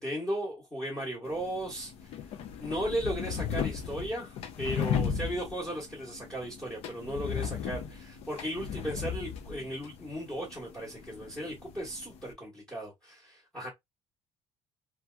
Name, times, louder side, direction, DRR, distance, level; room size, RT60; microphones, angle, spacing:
voice 1, 0.0-1.9 2.6-13.7, right 1 dB, 5° left, 1.2 m, -36 dB
sound 1, 1.3-12.3, left 8 dB, 65° left, 0.4 m, -36 dB
2.7 x 2.3 x 2.3 m
cardioid pair, 140°, 11 cm